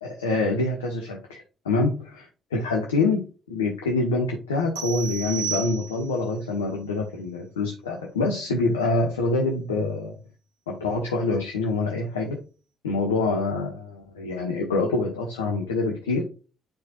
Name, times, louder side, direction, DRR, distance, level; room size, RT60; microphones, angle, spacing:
voice 1, 0.0-10.2 10.7-12.4 12.8-16.2, left 3 dB, 90° left, 0 dB, 1.1 m, -26 dB
sound 1, 4.8-6.3, right 8 dB, 80° right, 1.9 m, -33 dB
10.5 x 4.3 x 2.4 m, 0.34 s
hypercardioid pair, 45°, 0 cm